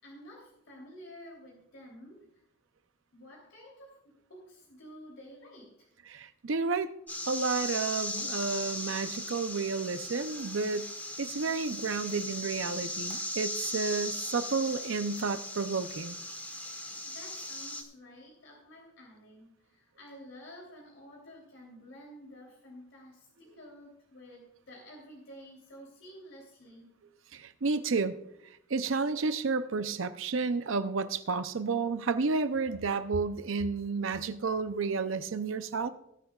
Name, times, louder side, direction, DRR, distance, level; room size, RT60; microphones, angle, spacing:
voice 1, 0.0-2.4 3.1-5.9 17.0-26.9, equal, 75° left, -2 dB, 3.3 m, -51 dB
voice 2, 6.1-6.9 7.3-10.9 11.2-16.2 27.3-28.1 28.7-35.9, right 4 dB, 75° right, 10 dB, 0.6 m, -31 dB
sound 1, 7.1-17.8, left 1 dB, 10° left, 1.3 m, -38 dB
19.5 x 10.0 x 2.4 m, 0.80 s
head